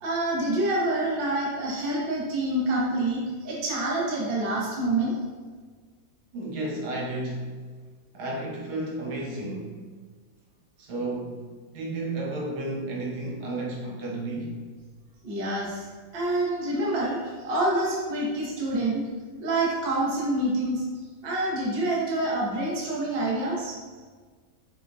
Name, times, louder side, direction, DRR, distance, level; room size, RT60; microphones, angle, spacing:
voice 1, 0.0-5.1 15.2-15.8 16.1-19.0 19.4-20.8 21.2-23.8, right 1 dB, 70° right, -5 dB, 0.5 m, -27 dB
voice 2, 6.3-7.6 8.1-9.7 10.8-11.4 11.7-14.6, right 2 dB, 85° right, -3 dB, 1.6 m, -32 dB
4.7 x 2.1 x 2.6 m, 1.5 s
omnidirectional pair, 2.2 m